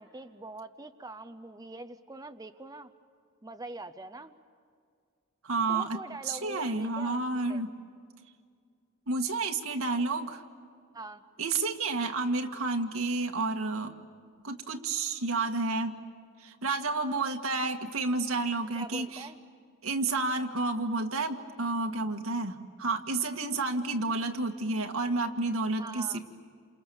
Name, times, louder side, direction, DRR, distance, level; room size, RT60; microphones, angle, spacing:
voice 1, 0.0-2.9 3.4-4.3 5.7-7.2 7.5-7.6 10.9-11.2 18.7-19.4 25.8-26.2, right 2 dB, 20° right, 10 dB, 0.7 m, -43 dB
voice 2, 5.4-6.0 6.2-7.7 9.1-10.4 11.4-13.9 14.4-16.0 16.4-19.3 19.8-26.2, right 3 dB, 85° right, 4 dB, 1.8 m, -30 dB
29.5 x 28.0 x 7.2 m, 2.1 s
head